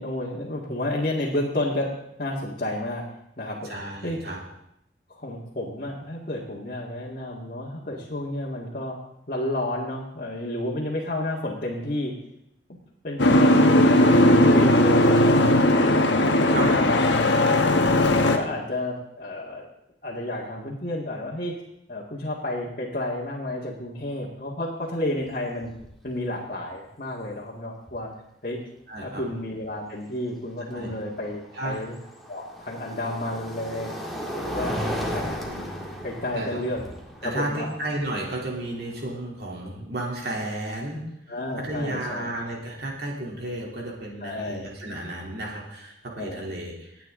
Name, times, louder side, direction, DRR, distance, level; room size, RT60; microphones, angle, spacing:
voice 1, 0.0-1.9 2.2-3.1 3.4-3.7 4.0-4.2 5.1-9.0 9.3-12.2 13.0-15.0 15.2-15.5 15.8-18.0 18.4-19.7 20.0-21.5 21.9-25.7 26.0-28.1 28.4-28.6 29.0-32.0 32.3-33.9 34.3-34.8 35.1-35.3 36.0-36.8 37.2-37.7 41.3-42.3 44.2-44.7 46.2-46.5, left 1 dB, 45° left, -4 dB, 1.9 m, -31 dB
voice 2, 3.6-4.4 16.4-16.8 28.9-29.2 30.6-30.9 31.5-31.8 34.4-35.3 36.3-36.6 37.2-41.0 41.6-47.1, right 1 dB, 60° right, -3 dB, 3.1 m, -33 dB
Boat Water vehicle, 13.2-18.4, left 1 dB, 75° left, 1.3 m, -18 dB
sound 1, 25.2-25.3 25.6-26.0 27.9-28.0 31.0-39.1, equal, ahead, 1.8 m, -35 dB
27.0 x 9.1 x 3.8 m, 0.79 s
head